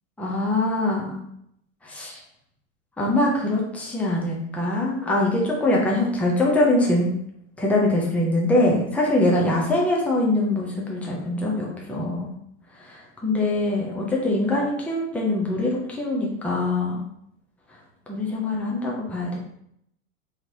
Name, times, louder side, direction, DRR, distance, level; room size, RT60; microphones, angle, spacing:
voice 1, 0.2-1.2 1.8-2.2 3.0-7.1 7.6-12.3 12.8-17.1 18.1-19.4, left 1 dB, 5° left, -3 dB, 0.6 m, -23 dB
3.5 x 3.1 x 2.7 m, 0.74 s
hypercardioid pair, 125°, 41 cm